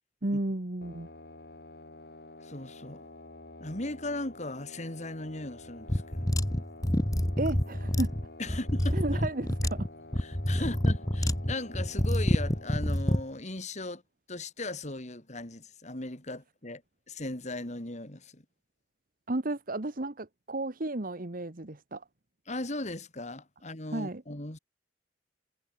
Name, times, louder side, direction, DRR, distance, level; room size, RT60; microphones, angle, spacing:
voice 1, 0.2-1.1 7.4-8.1 8.9-9.9 10.6-10.7 19.3-22.0 23.9-24.2, right 2 dB, 50° right, 1.4 m, -33 dB
sound 1, 0.8-12.7, left 2 dB, 65° left, 3.5 m, -49 dB
voice 2, 2.4-3.0 3.6-6.4 8.4-9.2 10.2-14.0 14.3-16.8 17.1-18.4 22.5-24.6, left 2 dB, 40° left, 3.2 m, -38 dB
sound 2, 5.9-13.2, equal, 20° left, 1.7 m, -28 dB
head